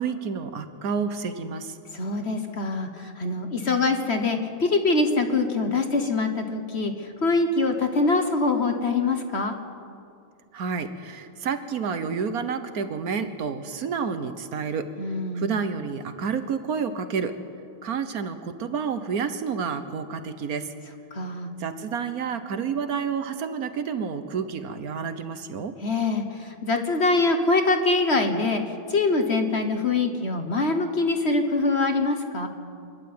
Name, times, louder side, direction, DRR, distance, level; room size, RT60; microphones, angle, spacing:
voice 1, 0.0-1.8 10.5-14.9 15.3-17.4 17.8-20.7 21.6-25.8, right 6 dB, 50° right, 10 dB, 1.4 m, -29 dB
voice 2, 1.9-9.5 15.0-15.5 21.1-21.5 25.8-32.5, left 3 dB, 35° left, 6 dB, 1.3 m, -24 dB
27.0 x 11.5 x 8.7 m, 2.4 s
omnidirectional pair, 2.2 m